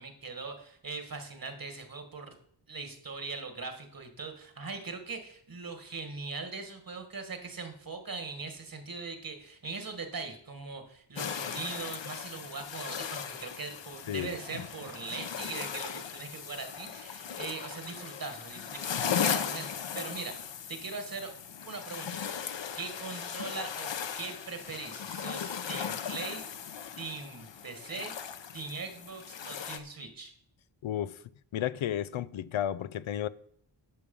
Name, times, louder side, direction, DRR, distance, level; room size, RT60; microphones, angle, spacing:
voice 1, 0.0-2.3 2.7-19.7 19.9-20.4 20.7-21.3 21.6-22.5 22.8-23.9 24.2-26.4 27.0-28.1 28.5-30.3, right 4 dB, 45° right, 1.9 m, -40 dB
sound 1, 11.2-29.8, left 8 dB, 65° left, 1.0 m, -37 dB
voice 2, 30.8-31.2 31.5-33.3, left 11 dB, 85° left, 0.6 m, -32 dB
11.0 x 7.0 x 5.4 m
wide cardioid pair, 95°, 46 cm